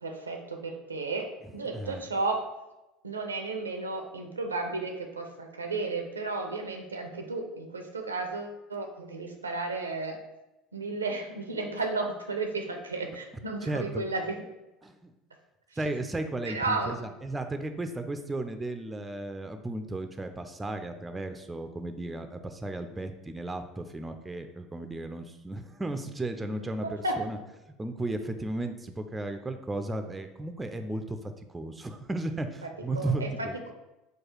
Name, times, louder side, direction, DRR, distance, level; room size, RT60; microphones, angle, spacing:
voice 1, 0.0-2.5 3.0-10.2 10.7-14.4 16.5-17.0 26.8-27.2 32.6-32.7 32.9-33.7, right 3 dB, 90° right, 4 dB, 0.5 m, -33 dB
voice 2, 1.7-2.0 13.6-14.0 14.8-15.1 15.8-27.4 27.8-33.5, right 2 dB, 15° right, 7 dB, 0.5 m, -35 dB
4.7 x 2.4 x 4.5 m, 0.97 s
figure-of-eight pair, 70°, 0 cm